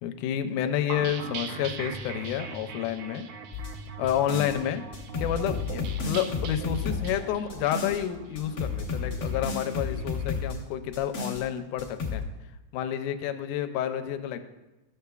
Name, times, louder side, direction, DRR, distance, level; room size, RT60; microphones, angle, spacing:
voice 1, 0.0-3.3 4.0-4.8 5.2-12.2 12.7-14.4, left 10 dB, 85° left, 8 dB, 2.1 m, -30 dB
sound 1, 0.9-10.4, right 5 dB, 85° right, 1.3 m, -40 dB
sound 2, 3.5-4.6 4.9-8.0 8.4-10.6 10.9-11.4 11.8-12.2, left 5 dB, 60° left, 0.9 m, -32 dB
12.5 x 6.6 x 2.3 m, 1.0 s
omnidirectional pair, 3.5 m